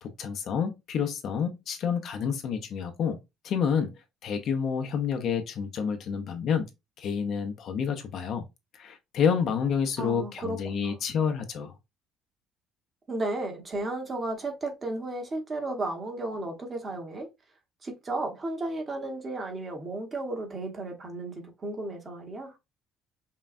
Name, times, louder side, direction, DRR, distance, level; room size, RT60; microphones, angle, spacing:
voice 1, 0.0-3.2 3.4-3.9 4.2-6.7 7.0-8.5 8.7-11.7, left 7 dB, 45° left, 0.6 m, -29 dB
voice 2, 10.0-10.9 13.1-17.3 17.8-22.5, right 2 dB, 20° right, 1.0 m, -34 dB
5.5 x 2.3 x 2.4 m
cardioid pair, 170°, 0 cm